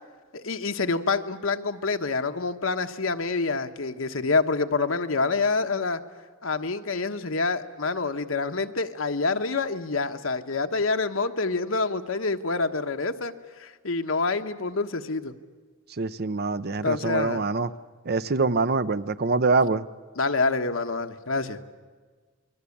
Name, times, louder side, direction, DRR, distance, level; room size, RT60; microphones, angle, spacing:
voice 1, 0.3-6.0 6.4-13.3 13.6-15.3 16.8-17.4 20.2-21.6, left 3 dB, 75° left, 7 dB, 1.3 m, -27 dB
voice 2, 16.0-17.7 18.0-19.9, right 3 dB, 50° right, 14 dB, 0.7 m, -24 dB
28.5 x 21.5 x 8.6 m, 1.5 s
head